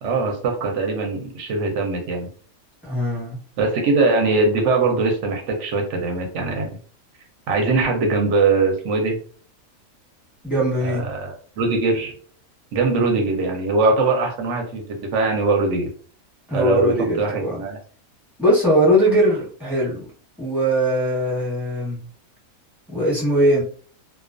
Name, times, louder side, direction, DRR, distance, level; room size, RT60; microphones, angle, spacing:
voice 1, 0.0-2.3 3.6-6.7 7.5-9.2 10.8-12.1 12.7-15.9 16.5-17.8, right 3 dB, 65° right, 3 dB, 0.9 m, -21 dB
voice 2, 2.8-3.4 10.4-11.1 16.5-17.6 18.4-20.1 20.4-22.0 22.9-23.6, equal, ahead, -7 dB, 0.9 m, -20 dB
2.3 x 2.2 x 2.4 m, 0.43 s
omnidirectional pair, 1.5 m